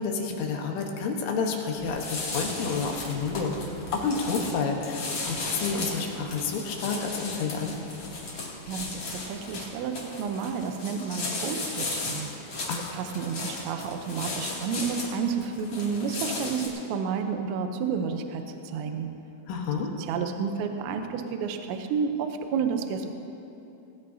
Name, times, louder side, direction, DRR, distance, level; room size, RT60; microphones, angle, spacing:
voice 1, 0.0-3.6 3.9-7.8 12.7-13.0 19.5-19.9, left 5 dB, 75° left, 1 dB, 3.6 m, -29 dB
sound 1, 1.8-16.7, left 3 dB, 40° left, 2.7 m, -35 dB
voice 2, 8.7-12.3 12.9-18.4 18.7-19.1 20.0-23.1, right 6 dB, 75° right, 6 dB, 2.8 m, -30 dB
19.5 x 19.0 x 2.8 m, 3.0 s
omnidirectional pair, 5.8 m